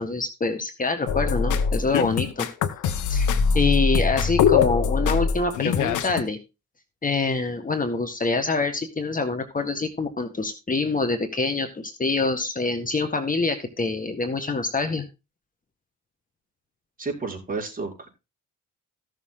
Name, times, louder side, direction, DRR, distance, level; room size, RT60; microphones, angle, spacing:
voice 1, 0.0-2.5 3.1-6.4 7.0-15.0, left 3 dB, 25° left, 7 dB, 1.7 m, -26 dB
sound 1, 1.1-6.2, left 6 dB, 75° left, 1.3 m, -22 dB
voice 2, 17.0-18.1, right 4 dB, 30° right, 1 dB, 4.7 m, -31 dB
15.5 x 6.8 x 3.8 m, 0.28 s
cardioid pair, 90°, 30 cm